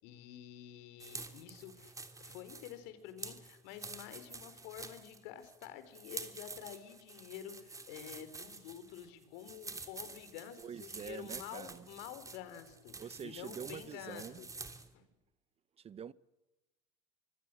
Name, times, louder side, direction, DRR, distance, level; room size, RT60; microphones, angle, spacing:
voice 1, 0.0-14.5 14.9-15.1, left 11 dB, 70° left, 4.1 m, -49 dB
sound 1, 1.0-14.9, right 3 dB, 20° right, 3.2 m, -49 dB
voice 2, 10.6-11.9 13.0-14.4 15.0-15.1 15.8-16.1, right 8 dB, 35° right, 0.9 m, -46 dB
26.0 x 24.5 x 7.7 m
hypercardioid pair, 75°, 18 cm